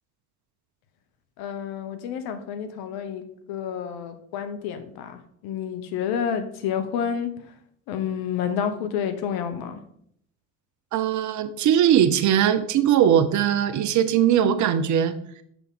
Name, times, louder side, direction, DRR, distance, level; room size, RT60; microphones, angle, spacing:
voice 1, 1.4-7.3 7.9-9.8, left 8 dB, 60° left, 9 dB, 1.0 m, -29 dB
voice 2, 10.9-15.2, right 9 dB, 45° right, 12 dB, 0.7 m, -20 dB
5.9 x 5.5 x 3.7 m, 0.68 s
hypercardioid pair, 75°, 43 cm